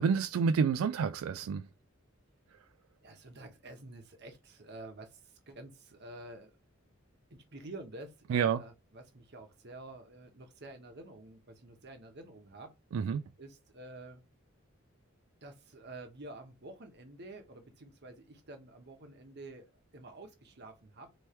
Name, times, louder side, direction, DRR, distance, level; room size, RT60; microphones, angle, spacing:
voice 1, 0.0-1.7 8.3-8.6 12.9-13.2, right 6 dB, 90° right, 0.3 m, -29 dB
voice 2, 3.0-6.6 7.3-12.7 13.4-14.2 15.4-21.1, right 2 dB, 55° right, 1.1 m, -49 dB
3.3 x 3.1 x 4.3 m
head